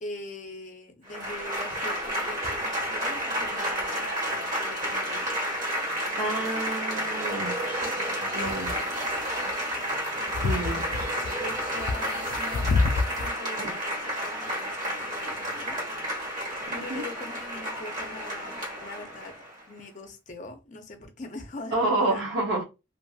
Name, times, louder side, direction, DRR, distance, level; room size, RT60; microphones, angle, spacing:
voice 1, 0.0-5.3 6.2-7.0 7.8-8.8 10.2-10.8 11.4-12.6 13.1-15.8 16.7-19.4 19.7-22.2, left 2 dB, 40° left, 0.6 m, -43 dB
Applause / Crowd, 1.1-19.6, equal, 45° right, 1.4 m, -31 dB
voice 2, 6.2-7.6 8.3-8.7 10.4-10.8 13.6-13.7 16.7-17.0 21.7-22.6, right 2 dB, 65° right, 0.7 m, -29 dB
sound 1, 8.3-13.3, left 3 dB, 90° left, 0.3 m, -28 dB
2.8 x 2.5 x 2.3 m
head